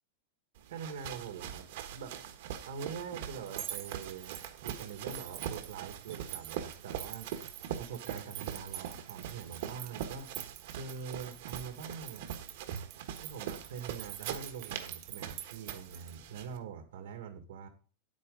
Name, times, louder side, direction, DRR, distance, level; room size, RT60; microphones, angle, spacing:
sound 1, 0.6-16.6, right 9 dB, 50° right, 1.3 m, -43 dB
voice 1, 0.7-1.7 1.9-2.2 2.6-7.3 7.8-10.3 10.7-12.5 13.2-17.7, right 6 dB, 70° right, 6 dB, 1.8 m, -44 dB
sound 2, 3.5-16.1, right 13 dB, 30° right, 0.8 m, -47 dB
9.7 x 8.4 x 3.9 m, 0.37 s
supercardioid pair, 175°, 0 cm